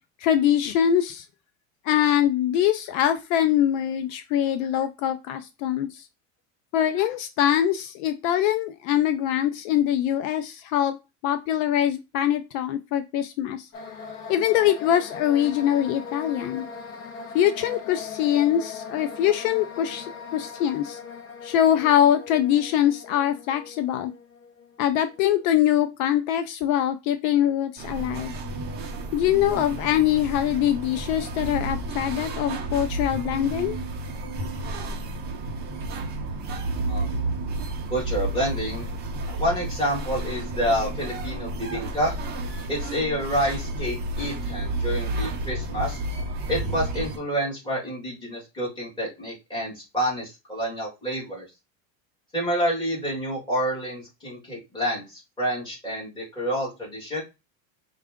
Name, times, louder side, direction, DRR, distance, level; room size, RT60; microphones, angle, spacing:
voice 1, 0.2-1.2 1.8-5.9 6.7-11.0 11.2-13.7 14.3-16.7 17.3-21.0 21.4-24.1 24.8-28.3 29.1-33.8, left 10 dB, 70° left, 9 dB, 0.6 m, -23 dB
sound 1, 13.7-25.6, left 5 dB, 40° left, 0.8 m, -40 dB
sound 2, 27.8-47.2, right 2 dB, 25° right, 0.6 m, -31 dB
voice 2, 36.9-37.2 37.9-38.9 39.3-42.1 42.7-46.0 46.5-51.5 52.3-57.2, equal, 10° left, -6 dB, 1.9 m, -28 dB
4.6 x 2.4 x 3.5 m, 0.25 s
cardioid pair, 165°, 42 cm